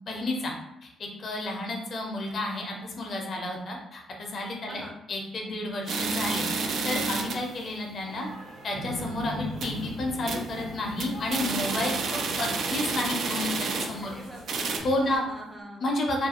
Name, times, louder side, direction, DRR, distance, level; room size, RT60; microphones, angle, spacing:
voice 1, 0.1-0.5 0.8-4.8 5.1-8.3 8.6-14.1 14.8-15.2 15.8-16.3, left 2 dB, 50° left, 0 dB, 0.5 m, -31 dB
voice 2, 4.7-5.0 14.0-14.8 15.0-15.9, equal, 10° right, 0 dB, 0.5 m, -44 dB
sound 1, 5.9-7.5 7.9-8.0 8.3-8.4 8.9-9.1 9.4-9.8 10.3-10.6 10.9-14.1 14.4-14.8, right 4 dB, 65° right, 0.4 m, -30 dB
sound 2, 8.0-15.2, equal, 85° right, 0.8 m, -46 dB
sound 3, 8.7-15.3, left 1 dB, 50° right, 1.1 m, -42 dB
2.4 x 2.2 x 2.8 m, 0.86 s
cardioid pair, 90°, 0 cm